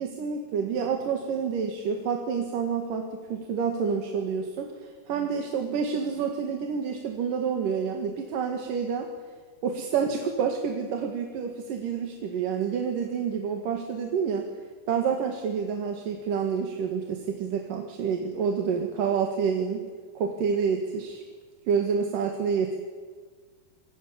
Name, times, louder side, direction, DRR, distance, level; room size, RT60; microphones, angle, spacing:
voice 1, 0.0-9.1 9.6-14.5 14.9-19.9 20.1-21.2 21.7-22.8, right 6 dB, 60° right, 3 dB, 3.3 m, -28 dB
26.5 x 23.0 x 8.8 m, 1.6 s
omnidirectional pair, 4.6 m